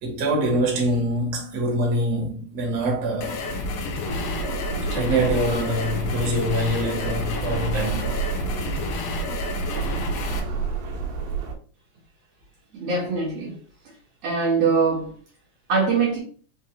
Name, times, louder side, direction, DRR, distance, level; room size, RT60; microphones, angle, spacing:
voice 1, 0.0-3.4 4.9-8.1, right 1 dB, 55° right, 1.3 m, -24 dB
sound 1, 3.2-10.4, left 3 dB, 80° left, 1.4 m, -30 dB
sound 2, 4.1-11.6, right 5 dB, 85° right, 2.2 m, -30 dB
voice 2, 12.7-13.6 14.2-15.1 15.7-16.2, right 4 dB, 70° right, 1.8 m, -22 dB
4.8 x 2.2 x 2.8 m
omnidirectional pair, 3.4 m